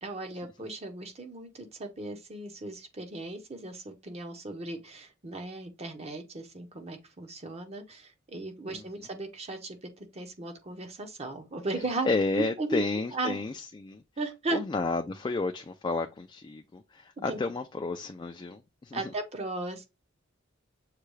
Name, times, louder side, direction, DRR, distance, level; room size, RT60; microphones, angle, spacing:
voice 1, 0.0-12.1 12.4-12.8 13.1-13.4 14.2-14.6 17.3-17.4 18.9-19.8, right 2 dB, 30° right, 0.7 m, -36 dB
voice 2, 12.1-14.0 14.5-19.0, left 3 dB, 20° left, 0.3 m, -31 dB
6.6 x 2.2 x 3.1 m
head